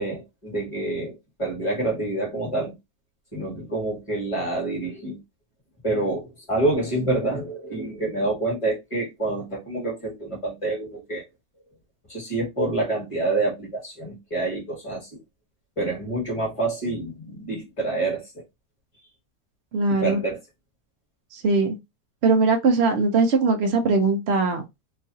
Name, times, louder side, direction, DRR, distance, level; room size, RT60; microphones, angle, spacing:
voice 1, 0.0-2.8 3.3-5.2 5.8-11.2 12.1-15.2 15.8-18.4 19.9-20.4, right 2 dB, 20° left, 1.4 m, -27 dB
voice 2, 19.7-20.2 21.3-21.7 22.2-24.6, right 3 dB, 65° right, 0.6 m, -20 dB
3.0 x 2.4 x 2.6 m
omnidirectional pair, 1.5 m